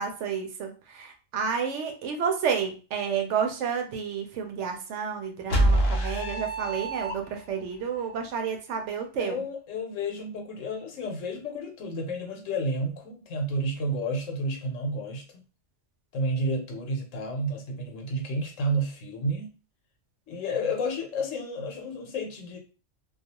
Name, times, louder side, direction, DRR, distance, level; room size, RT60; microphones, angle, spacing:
voice 1, 0.0-9.4, right 6 dB, 70° right, 4 dB, 0.9 m, -30 dB
sound 1, 5.5-7.6, right 1 dB, 55° left, 0.9 m, -25 dB
voice 2, 9.2-15.4 16.1-19.5 20.3-22.6, equal, 80° left, 3 dB, 1.1 m, -31 dB
2.3 x 2.3 x 2.8 m, 0.34 s
omnidirectional pair, 1.3 m